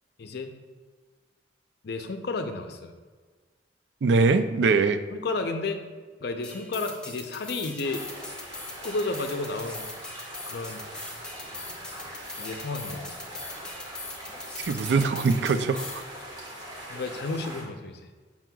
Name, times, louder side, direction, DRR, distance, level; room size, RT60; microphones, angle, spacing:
voice 1, 0.2-0.5 1.8-2.9 5.1-5.8 6.2-8.0 8.8-9.9 10.4-10.9 12.4-13.2 16.9-18.1, left 3 dB, 65° left, 6 dB, 0.6 m, -32 dB
voice 2, 4.0-5.0 14.6-16.0, right 4 dB, 70° right, 9 dB, 0.4 m, -22 dB
sound 1, 6.4-16.1, left 2 dB, 5° left, 0.7 m, -41 dB
sound 2, 7.8-17.6, equal, 25° right, 1.4 m, -42 dB
7.4 x 5.9 x 2.3 m, 1.4 s
head